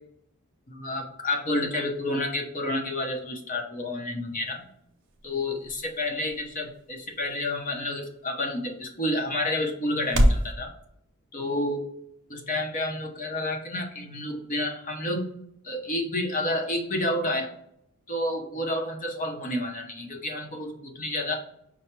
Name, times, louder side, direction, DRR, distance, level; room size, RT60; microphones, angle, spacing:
voice 1, 0.7-4.6 5.2-10.7 11.3-11.9 12.3-15.3 15.6-17.5 18.1-21.4, left 1 dB, 35° left, 2 dB, 0.7 m, -30 dB
sound 1, 4.2-10.5, equal, 55° right, 0.7 m, -31 dB
5.5 x 2.1 x 4.4 m, 0.74 s
head